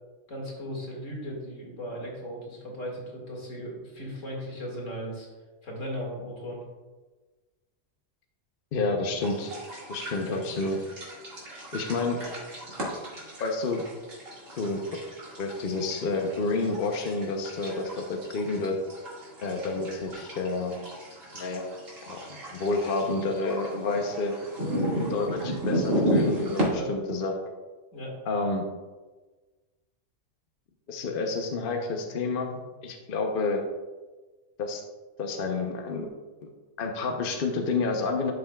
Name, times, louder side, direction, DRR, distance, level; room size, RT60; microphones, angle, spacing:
voice 1, 0.3-5.3 5.6-6.6 26.6-26.9 27.9-28.2, equal, 85° left, -2 dB, 2.3 m, -37 dB
voice 2, 8.7-9.5 9.9-10.8 11.7-12.2 13.4-13.8 14.6-15.0 15.4-18.8 19.4-20.7 21.3-21.6 22.1-22.2 22.5-24.4 25.1-27.4 28.3-28.6 30.9-33.6 34.6-34.8 35.2-36.1 36.8-38.3, left 3 dB, 50° left, 3 dB, 0.9 m, -29 dB
sound 1, 9.2-26.7, equal, 90° right, 2.4 m, -34 dB
11.5 x 5.9 x 2.3 m, 1.3 s
omnidirectional pair, 1.3 m